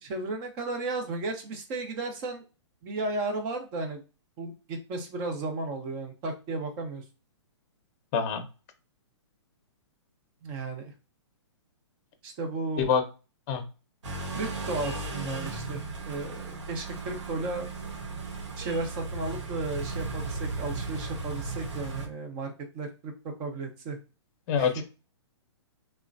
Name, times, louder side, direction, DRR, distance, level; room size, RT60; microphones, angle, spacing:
voice 1, 0.0-2.4 2.8-4.0 4.4-7.0 10.4-10.9 12.2-12.9 14.3-17.7 18.6-23.1 23.4-24.0 24.6-24.8, right 3 dB, 30° right, 4 dB, 0.8 m, -34 dB
voice 2, 8.1-8.4 12.8-13.0 13.5-13.6 24.5-24.8, left 7 dB, 35° left, 7 dB, 0.7 m, -25 dB
sound 1, 14.0-22.1, right 3 dB, 80° right, 1.0 m, -36 dB
3.0 x 2.1 x 2.5 m, 0.33 s
hypercardioid pair, 140°, 15 cm